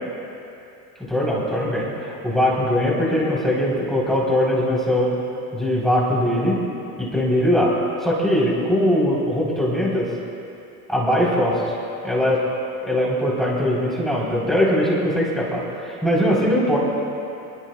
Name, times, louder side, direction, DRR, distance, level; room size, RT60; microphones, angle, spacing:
voice 1, 1.1-5.2 5.5-6.6 7.0-7.7 8.0-10.1 10.9-11.6 12.0-12.4 12.8-16.8, equal, ahead, -6 dB, 3.6 m, -21 dB
27.0 x 22.5 x 2.3 m, 2.7 s
cardioid pair, 140°, 41 cm